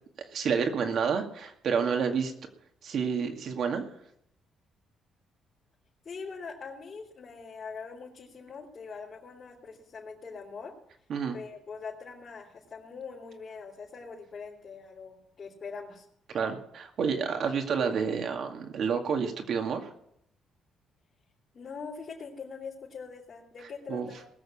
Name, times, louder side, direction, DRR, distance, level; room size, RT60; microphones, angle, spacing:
voice 1, 0.3-2.3 2.8-3.8 11.1-11.4 16.3-19.9 23.9-24.1, right 6 dB, 65° right, 4 dB, 2.2 m, -29 dB
voice 2, 6.0-10.7 11.3-16.1 21.5-24.2, left 5 dB, 45° left, -5 dB, 3.8 m, -42 dB
20.0 x 6.7 x 7.2 m, 0.73 s
cardioid pair, 90°, 0 cm